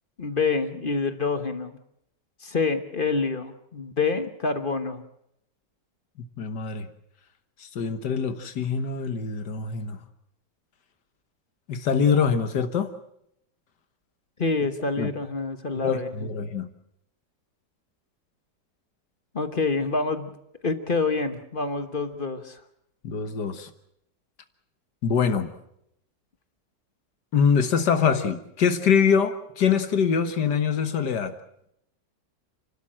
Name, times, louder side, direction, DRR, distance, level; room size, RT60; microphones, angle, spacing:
voice 1, 0.2-1.8 2.4-5.0 14.4-16.1 19.3-20.3 20.6-22.6, left 4 dB, 35° left, 9 dB, 1.3 m, -27 dB
voice 2, 6.4-6.9 7.8-10.0 11.7-12.9 15.0-15.1 15.7-16.7 23.0-23.7 25.0-25.5 27.3-31.3, left 6 dB, 75° left, 9 dB, 1.9 m, -24 dB
30.0 x 12.5 x 7.5 m, 0.77 s
omnidirectional pair, 1.9 m